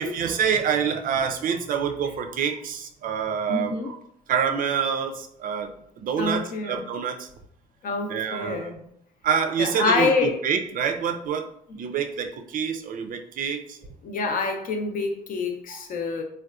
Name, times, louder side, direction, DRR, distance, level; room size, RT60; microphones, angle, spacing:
voice 1, 0.0-4.0 4.3-7.3 8.1-8.7 9.2-13.8 15.7-15.8, right 7 dB, 45° right, 5 dB, 0.5 m, -27 dB
voice 2, 3.5-3.9 6.2-6.9 7.8-8.8 9.6-10.4 14.0-16.2, left 4 dB, 45° left, 4 dB, 0.6 m, -27 dB
3.5 x 2.2 x 2.4 m, 0.71 s
hypercardioid pair, 55°, 20 cm